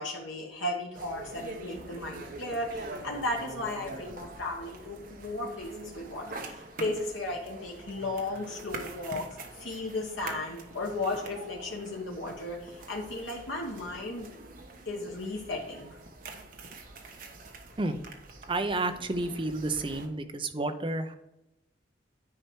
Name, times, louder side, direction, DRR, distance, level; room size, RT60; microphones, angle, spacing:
voice 1, 0.0-14.3 14.8-15.9, left 2 dB, 90° left, -1 dB, 1.1 m, -35 dB
sound 1, 0.9-20.1, right 2 dB, 50° right, 1.1 m, -45 dB
voice 2, 18.5-21.2, right 2 dB, 25° right, 7 dB, 0.6 m, -31 dB
9.7 x 4.5 x 4.5 m, 0.90 s
head